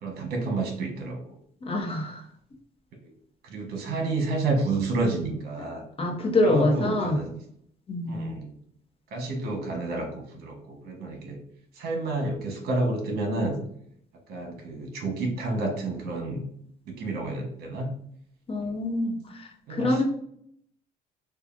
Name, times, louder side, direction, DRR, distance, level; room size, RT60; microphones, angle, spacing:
voice 1, 0.0-1.3 3.4-5.8 6.4-7.3 8.1-8.5 9.1-11.4 11.7-13.6 14.3-16.4 16.9-17.9 18.6-18.7 19.7-20.0, right 2 dB, 65° right, 2 dB, 1.2 m, -30 dB
voice 2, 1.7-2.2 6.0-7.2 7.9-8.3 18.5-20.0, left 1 dB, 35° left, 1 dB, 0.8 m, -25 dB
5.0 x 2.3 x 2.5 m, 0.68 s
cardioid pair, 110°, 17 cm